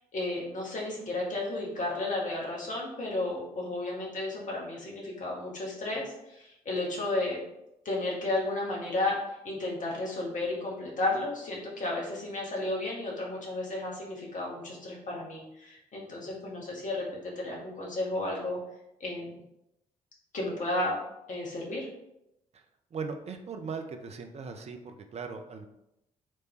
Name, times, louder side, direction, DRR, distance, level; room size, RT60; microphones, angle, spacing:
voice 1, 0.1-7.4 7.8-9.1 9.4-18.6 19.0-19.3 20.3-21.0 21.3-21.9, left 2 dB, 40° left, -2 dB, 1.4 m, -33 dB
voice 2, 22.9-25.7, right 5 dB, 35° right, 6 dB, 0.6 m, -39 dB
4.5 x 3.2 x 3.0 m, 0.87 s
figure-of-eight pair, 40°, 19 cm